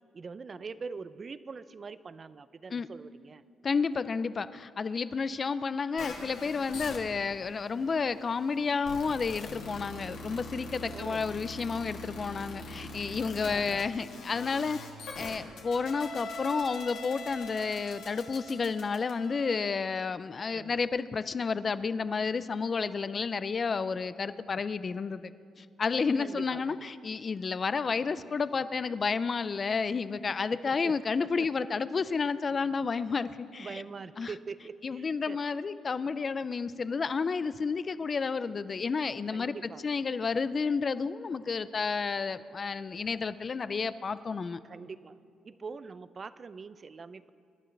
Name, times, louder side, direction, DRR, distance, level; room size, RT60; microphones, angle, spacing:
voice 1, 0.1-3.4 10.9-11.3 13.4-13.9 20.5-20.8 26.1-26.9 30.6-31.0 31.2-31.7 33.5-35.4 39.3-39.8 44.6-45.2 45.4-47.3, right 4 dB, 40° right, 14 dB, 0.5 m, -43 dB
voice 2, 3.6-14.8 15.2-25.3 25.6-33.8 34.2-34.3 34.8-39.5 39.8-44.6, left 5 dB, 40° left, 14 dB, 0.5 m, -31 dB
sound 1, 6.0-19.6, left 2 dB, 80° left, 2.4 m, -43 dB
25.0 x 11.5 x 3.3 m, 2.3 s
cardioid pair, 90°, 0 cm